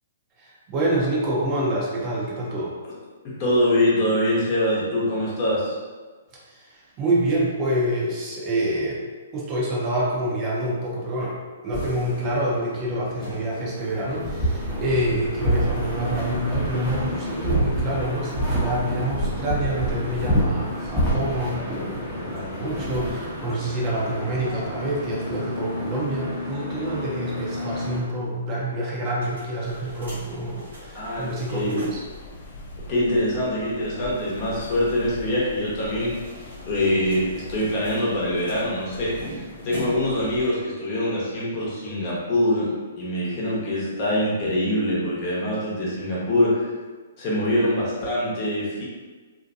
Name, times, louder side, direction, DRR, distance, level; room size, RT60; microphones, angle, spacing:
voice 1, 0.4-2.7 6.5-9.0 9.3-11.4 11.6-32.0, right 1 dB, 30° right, -5 dB, 0.7 m, -27 dB
voice 2, 3.4-5.8 30.9-31.8 32.9-36.2 36.6-42.7 43.0-46.7 47.2-48.8, left 1 dB, 40° left, -6 dB, 0.9 m, -24 dB
sound 1, 11.7-28.0, equal, 5° left, 0.8 m, -28 dB
sound 2, 28.9-32.2 32.5-32.6 32.8-32.9 35.7-40.3, right 1 dB, 70° right, 1.1 m, -42 dB
sound 3, 29.6-40.5, left 2 dB, 55° left, 0.4 m, -42 dB
2.6 x 2.1 x 2.6 m, 1.4 s
hypercardioid pair, 130°, 0 cm